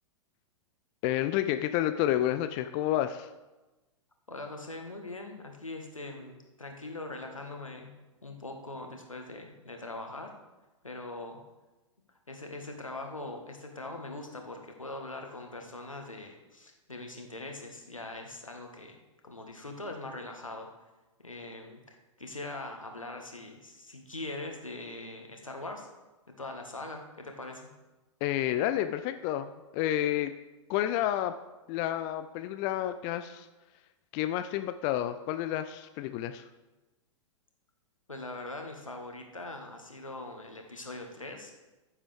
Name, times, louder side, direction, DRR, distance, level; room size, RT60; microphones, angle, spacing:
voice 1, 1.0-3.3 28.2-30.3 30.7-31.3 31.7-33.5 34.1-36.4, left 12 dB, 30° left, 10 dB, 0.4 m, -30 dB
voice 2, 4.3-7.9 8.2-10.3 10.8-11.4 12.3-19.0 19.2-20.7 21.2-25.9 26.4-27.7 38.1-41.5, left 2 dB, 85° left, 3 dB, 1.6 m, -42 dB
14.0 x 7.2 x 3.5 m, 1.1 s
figure-of-eight pair, 100°, 16 cm